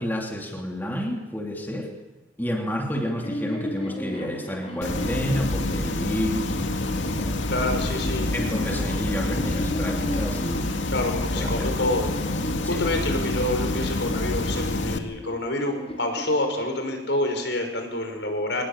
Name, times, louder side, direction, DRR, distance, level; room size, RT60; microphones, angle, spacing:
voice 1, 0.0-1.9 2.4-7.4 8.3-10.8 11.3-11.9 12.6-12.8, equal, 10° left, 1 dB, 2.8 m, -30 dB
sound 1, 2.9-6.3 7.2-10.6 11.2-13.7 14.7-17.1, left 1 dB, 30° left, 4.5 m, -36 dB
sound 2, 4.8-15.0, left 2 dB, 85° left, 2.1 m, -27 dB
voice 2, 7.5-8.3 10.9-18.6, left 1 dB, 70° left, 5 dB, 5.7 m, -27 dB
24.0 x 19.5 x 8.8 m, 1.1 s
head